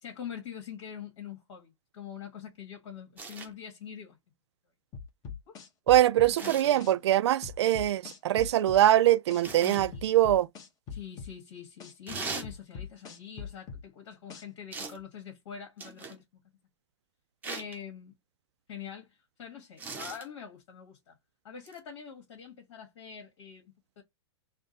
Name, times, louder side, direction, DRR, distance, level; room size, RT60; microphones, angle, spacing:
voice 1, 0.0-4.2 5.5-5.7 6.4-7.0 9.6-10.1 10.9-16.4 17.4-18.2 18.7-21.2 21.4-24.0, left 8 dB, 65° left, 1.6 m, -44 dB
sound 1, 3.2-3.5 6.4-6.8 9.4-9.9 12.1-12.5 14.7-15.0 15.8-16.2 17.4-17.8 19.8-20.3 21.7-21.8, right 4 dB, 10° right, 0.7 m, -39 dB
sound 2, 4.9-6.3 6.8-6.9 7.4-8.8 9.3-9.4 9.8-11.3 11.8-11.9 12.4-13.8 14.3-14.4, left 6 dB, 25° left, 1.0 m, -41 dB
voice 2, 5.9-10.5, right 13 dB, 65° right, 0.4 m, -23 dB
3.6 x 2.2 x 3.9 m
hypercardioid pair, 135°, 15 cm